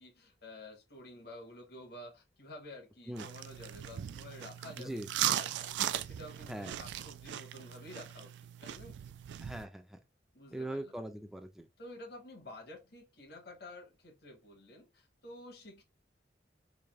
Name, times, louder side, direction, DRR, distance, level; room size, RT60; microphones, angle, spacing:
voice 1, 0.0-5.0 5.4-8.3 8.6-9.0 10.3-10.9 11.8-15.8, left 1 dB, 65° left, 1.1 m, -50 dB
sound 1, 3.1-9.6, right 11 dB, 90° right, 0.3 m, -38 dB
voice 2, 4.8-5.1 6.5-6.7 9.4-10.0 10.5-11.7, right 1 dB, ahead, 0.3 m, -41 dB
3.3 x 2.6 x 3.6 m
head